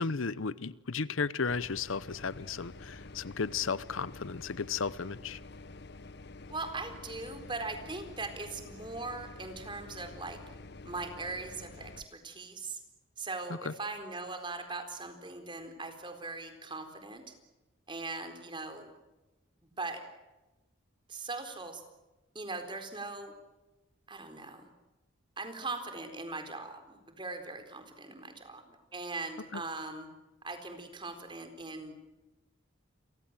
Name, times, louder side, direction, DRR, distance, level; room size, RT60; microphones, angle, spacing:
voice 1, 0.0-5.4 13.6-13.7 29.5-29.6, left 5 dB, 80° left, 18 dB, 0.8 m, -34 dB
sound 1, 1.5-12.0, left 2 dB, 55° left, 1.0 m, -48 dB
voice 2, 6.5-10.4 10.8-12.8 13.2-17.2 17.9-18.9 19.8-20.0 21.1-21.8 22.3-23.3 24.1-24.7 25.4-30.1 30.4-32.0, right 3 dB, 25° right, 7 dB, 4.2 m, -40 dB
30.0 x 24.0 x 7.6 m, 1.1 s
head